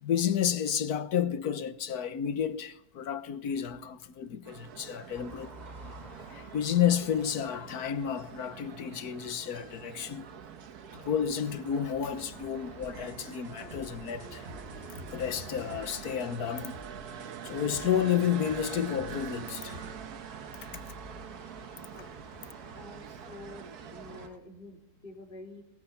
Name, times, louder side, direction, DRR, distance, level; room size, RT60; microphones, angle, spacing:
voice 1, 0.0-5.5 6.3-10.3 10.9-14.5 15.1-16.8 17.4-19.8 20.7-20.8 21.9-22.1, left 9 dB, 85° left, 1.6 m, -31 dB
sound 1, 4.4-24.3, right 8 dB, 90° right, 1.6 m, -45 dB
sound 2, 5.1-24.4, right 1 dB, 25° right, 3.4 m, -53 dB
sound 3, 12.8-20.0, right 1 dB, 45° right, 2.0 m, -47 dB
voice 2, 22.8-25.6, left 2 dB, 35° left, 3.4 m, -48 dB
21.5 x 20.5 x 7.0 m
omnidirectional pair, 1.6 m